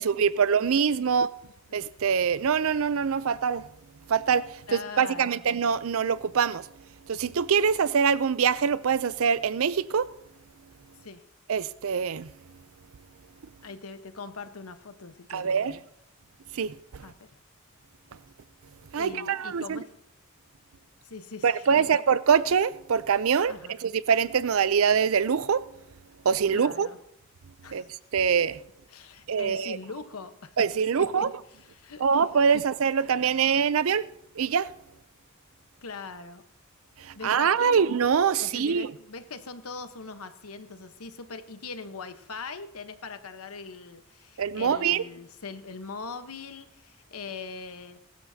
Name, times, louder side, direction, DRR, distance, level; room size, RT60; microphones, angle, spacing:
voice 1, 0.0-1.3 1.7-3.6 4.1-6.7 7.1-10.1 11.5-12.3 15.3-15.8 16.5-17.0 18.9-19.8 21.4-25.7 26.3-26.9 27.7-27.8 28.1-28.6 29.3-29.8 30.6-31.3 32.0-34.1 34.4-34.7 37.0-38.9 44.4-45.0, right 6 dB, 70° right, 0.5 m, -24 dB
voice 2, 4.7-5.4 11.0-11.2 13.6-15.8 17.0-17.3 18.9-19.9 21.0-22.0 23.5-23.7 26.5-27.0 27.6-27.9 28.9-30.6 31.0-31.3 31.5-32.2 32.5-32.6 35.8-36.4 37.1-37.8 38.3-48.0, left 4 dB, 80° left, 1.1 m, -41 dB
22.0 x 12.5 x 2.8 m
head